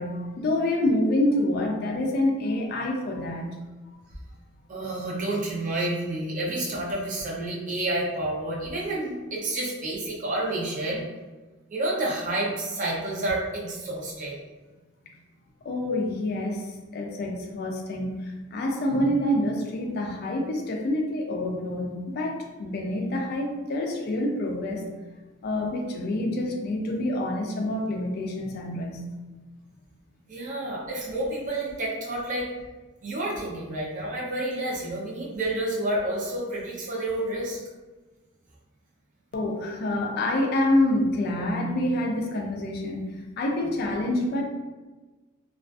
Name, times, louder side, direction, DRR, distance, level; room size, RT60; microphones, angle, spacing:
voice 1, 0.0-3.5 15.6-24.8 25.4-29.1 39.3-43.0 43.4-44.4, left 1 dB, 50° left, 1 dB, 0.4 m, -27 dB
voice 2, 4.7-11.0 11.7-14.4 30.3-32.5 33.0-37.6 43.6-43.7, right 1 dB, 40° right, -5 dB, 0.6 m, -29 dB
2.4 x 2.3 x 2.3 m, 1.2 s
head